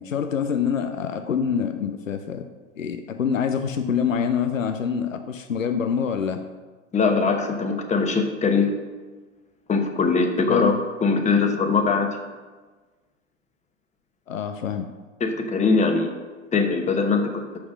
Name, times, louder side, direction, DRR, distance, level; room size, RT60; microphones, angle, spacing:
voice 1, 0.0-2.4 2.8-6.4 10.5-10.7 14.3-14.9, left 7 dB, 90° left, 8 dB, 0.6 m, -26 dB
voice 2, 6.9-8.7 9.7-10.7 11.0-12.2 15.2-16.1 16.5-17.4, left 4 dB, 20° left, 5 dB, 1.0 m, -21 dB
6.2 x 5.9 x 6.2 m, 1.3 s
figure-of-eight pair, 90°, 38 cm